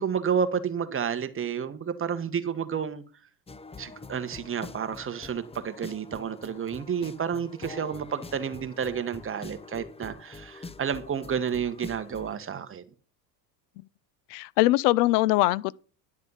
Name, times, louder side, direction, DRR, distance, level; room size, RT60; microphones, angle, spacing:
voice 1, 0.0-3.0 3.8-12.8, right 7 dB, 25° right, 1.3 m, -30 dB
sound 1, 3.5-12.4, left 3 dB, 15° left, 0.7 m, -45 dB
voice 2, 14.3-15.7, left 18 dB, 75° left, 0.6 m, -22 dB
11.0 x 7.4 x 5.6 m
supercardioid pair, 95°, 47 cm